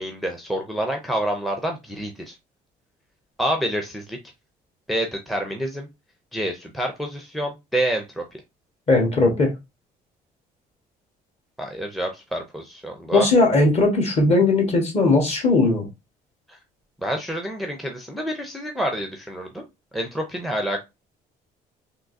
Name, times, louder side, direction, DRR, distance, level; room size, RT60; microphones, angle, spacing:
voice 1, 0.0-2.4 3.4-4.2 4.9-5.9 6.3-8.2 11.6-13.3 16.5-16.6 17.0-19.6 19.9-20.8, right 1 dB, ahead, 0.5 m, -27 dB
voice 2, 8.9-9.5 13.1-15.9, left 2 dB, 40° left, 1.4 m, -18 dB
3.6 x 2.8 x 2.6 m
cardioid pair, 110°, 17 cm